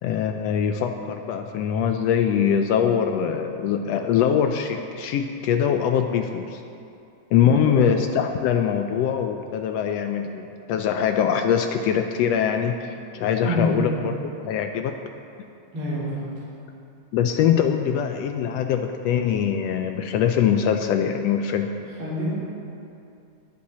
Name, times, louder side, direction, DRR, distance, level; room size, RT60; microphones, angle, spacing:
voice 1, 0.0-6.6 7.3-14.2 14.5-15.0 17.1-21.7, left 8 dB, 80° left, 6 dB, 1.5 m, -23 dB
voice 2, 7.5-7.8 13.4-14.0 15.7-16.4 22.0-22.3, equal, 45° right, -9 dB, 3.8 m, -26 dB
22.0 x 7.5 x 4.2 m, 2.6 s
omnidirectional pair, 3.4 m